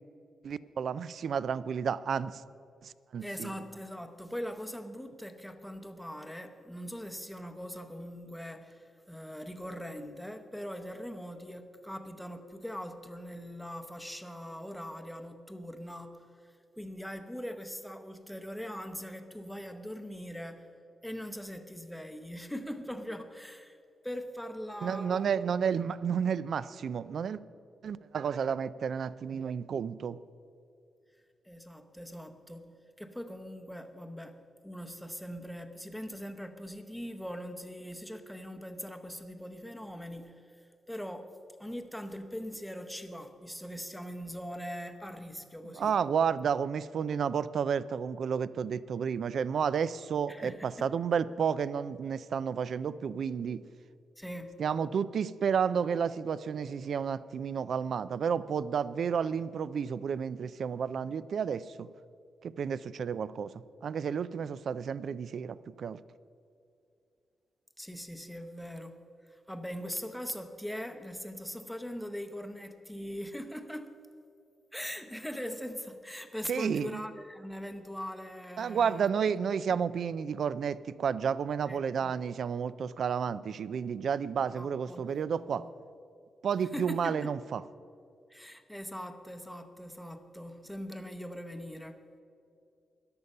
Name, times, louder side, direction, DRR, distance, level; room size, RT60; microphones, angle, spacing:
voice 1, 0.4-2.4 2.8-3.5 24.8-27.4 27.8-30.2 45.8-53.6 54.6-61.9 62.4-63.5 63.8-66.0 76.5-77.0 78.6-85.7 86.4-87.6, right 7 dB, 55° right, 0.3 m, -31 dB
voice 2, 3.2-20.7 21.0-23.8 24.0-25.3 31.4-41.3 41.6-46.0 50.3-50.9 54.2-54.6 67.8-74.0 74.7-79.1 79.9-80.0 81.7-82.2 84.5-85.7 86.7-87.3 88.3-92.0, equal, ahead, 0.8 m, -41 dB
13.5 x 11.0 x 5.4 m
wide cardioid pair, 165°, 0 cm